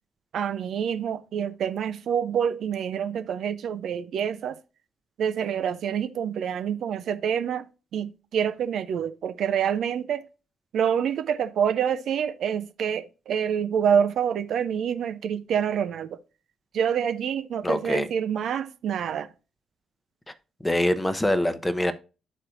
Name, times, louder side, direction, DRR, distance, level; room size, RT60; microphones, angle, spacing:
voice 1, 0.3-4.6 5.2-7.7 7.9-10.2 10.7-16.2 16.7-19.3, right 8 dB, 55° right, 0.5 m, -27 dB
voice 2, 17.6-18.1 20.6-21.9, left 1 dB, 10° left, 0.8 m, -24 dB
12.0 x 4.3 x 2.5 m
figure-of-eight pair, 40°, 0 cm